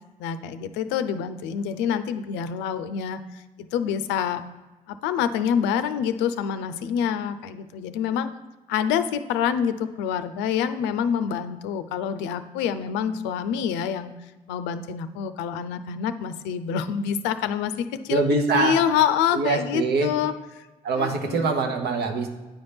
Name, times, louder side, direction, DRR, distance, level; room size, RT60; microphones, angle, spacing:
voice 1, 0.2-4.4 4.9-8.3 8.7-14.1 14.5-18.2 18.5-20.3 21.0-21.5, left 8 dB, 75° left, 12 dB, 0.5 m, -26 dB
voice 2, 18.1-18.8 19.3-20.1 20.8-22.3, right 3 dB, 65° right, 4 dB, 1.0 m, -23 dB
9.3 x 4.0 x 3.5 m, 1.1 s
hypercardioid pair, 50°, 18 cm